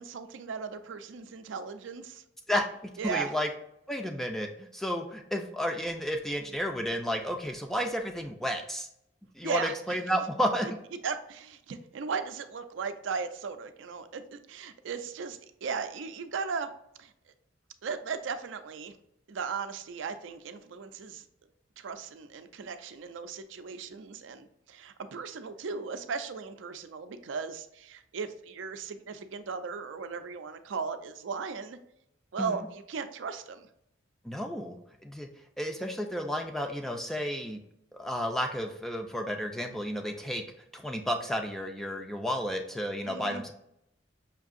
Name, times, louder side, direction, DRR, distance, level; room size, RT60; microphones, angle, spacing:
voice 1, 0.0-2.2 3.0-3.3 9.4-9.7 10.6-10.7 11.0-16.7 17.0-17.1 17.8-19.0 19.3-21.2 21.8-31.8 32.3-33.7 43.0-43.4, right 5 dB, 75° right, 9 dB, 0.4 m, -37 dB
voice 2, 3.0-3.5 3.9-8.9 9.4-10.7 32.4-32.7 34.2-34.8 35.0-35.3 35.6-37.6 38.0-40.4 40.7-43.5, equal, ahead, 3 dB, 0.3 m, -32 dB
5.7 x 2.6 x 2.4 m, 0.78 s
head